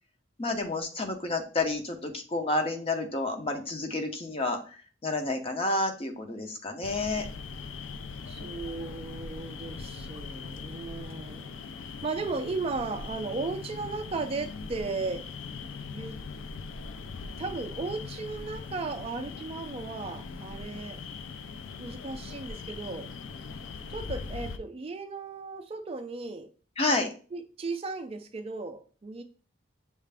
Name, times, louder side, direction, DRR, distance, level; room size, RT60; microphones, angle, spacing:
voice 1, 0.4-4.6 5.0-7.3 26.8-27.1, left 2 dB, 30° left, 4 dB, 0.6 m, -30 dB
sound 1, 6.8-24.6, left 4 dB, 75° left, 0.4 m, -40 dB
voice 2, 8.3-15.3 15.9-16.2 17.4-21.0 21.8-23.1 23.9-26.5 27.3-29.2, right 3 dB, 30° right, 7 dB, 0.3 m, -36 dB
6.5 x 2.4 x 3.3 m, 0.38 s
head